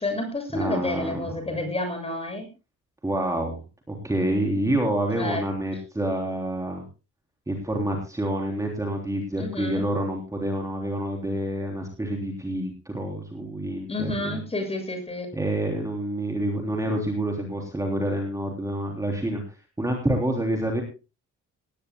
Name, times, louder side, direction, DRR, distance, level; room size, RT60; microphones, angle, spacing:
voice 1, 0.0-2.5 5.1-5.4 9.4-9.8 13.9-15.3, left 2 dB, 20° left, 5 dB, 7.3 m, -30 dB
voice 2, 0.5-1.3 3.0-3.6 3.9-6.8 7.5-14.4 15.3-20.8, right 1 dB, 10° right, 1 dB, 3.5 m, -28 dB
19.5 x 17.0 x 2.3 m, 0.31 s
cardioid pair, 150°, 30 cm